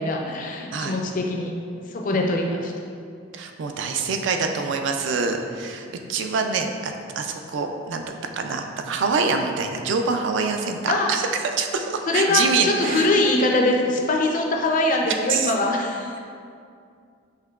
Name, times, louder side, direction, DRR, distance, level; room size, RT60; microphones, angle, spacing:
voice 1, 0.0-1.5 1.9-2.7 10.9-11.1 12.1-16.1, left 2 dB, 40° left, 1 dB, 0.4 m, -22 dB
voice 2, 3.3-8.0 8.3-11.3 11.6-13.1 15.3-15.5, right 4 dB, 60° right, 4 dB, 0.3 m, -25 dB
5.7 x 2.8 x 2.3 m, 2.3 s
head